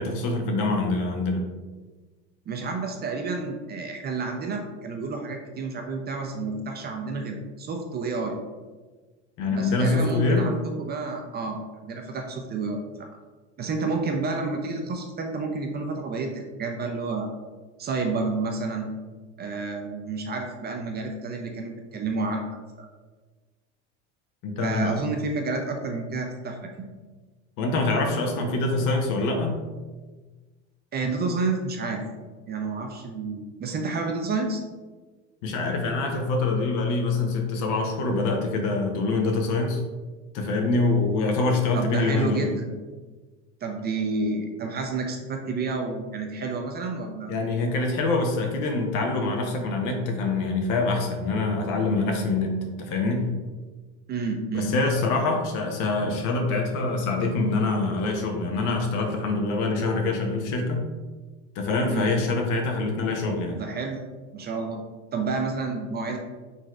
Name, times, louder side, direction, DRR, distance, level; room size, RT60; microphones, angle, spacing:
voice 1, 0.0-1.4 9.4-10.5 24.4-25.0 27.6-29.6 35.4-39.8 40.3-42.5 47.3-53.3 54.5-60.9 61.5-63.6, left 3 dB, 60° left, 3 dB, 0.8 m, -25 dB
voice 2, 2.5-8.4 9.4-13.1 13.6-17.3 17.8-18.9 19.4-22.5 22.8-22.9 24.6-26.9 30.9-32.0 32.5-34.6 41.7-42.7 43.6-47.3 54.1-54.7 61.9-62.1 63.3-64.0 64.3-64.8 65.1-66.2, right 3 dB, 30° right, 3 dB, 0.4 m, -30 dB
3.9 x 3.1 x 2.3 m, 1.3 s
hypercardioid pair, 90°, 36 cm